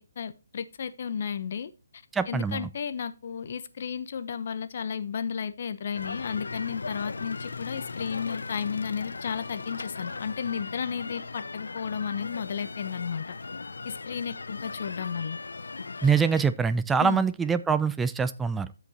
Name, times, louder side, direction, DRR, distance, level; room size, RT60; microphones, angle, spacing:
voice 1, 0.2-1.7 2.3-13.4 13.8-15.4 17.0-17.2, left 7 dB, 50° left, 0.9 m, -33 dB
voice 2, 2.1-2.7 16.0-18.7, right 5 dB, 10° right, 0.5 m, -24 dB
sound 1, 5.9-16.4, left 3 dB, 80° left, 0.6 m, -38 dB
14.0 x 5.2 x 2.9 m
hypercardioid pair, 150°, 0 cm